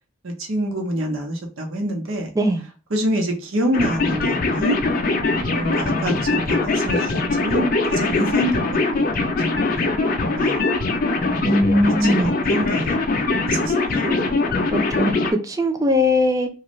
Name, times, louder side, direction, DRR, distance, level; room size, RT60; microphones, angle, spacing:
voice 1, 0.2-2.3 2.9-4.8 5.5-8.6 8.9-9.2 9.5-9.9 10.3-10.6 11.4-11.5 12.0-13.0 13.5-14.1, right 1 dB, 85° right, 0.9 m, -26 dB
sound 1, 3.7-15.3, left 3 dB, 40° left, 0.4 m, -22 dB
voice 2, 11.4-12.3 15.0-16.5, left 1 dB, 15° right, 0.4 m, -19 dB
2.6 x 2.3 x 3.0 m
head